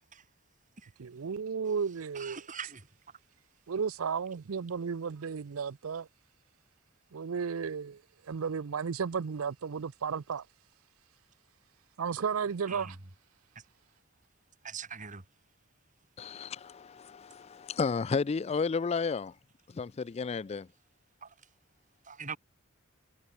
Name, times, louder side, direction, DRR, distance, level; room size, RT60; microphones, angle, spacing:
voice 1, 1.0-2.4 3.7-6.1 7.1-10.5 12.0-13.0, right 6 dB, 85° right, 0.5 m, -34 dB
voice 2, 2.1-2.9 12.7-12.9 14.6-15.2 21.2-21.3 22.0-22.4, right 6 dB, 40° right, 2.6 m, -42 dB
voice 3, 16.2-19.3 19.7-20.7, left 5 dB, 30° left, 0.3 m, -32 dB
head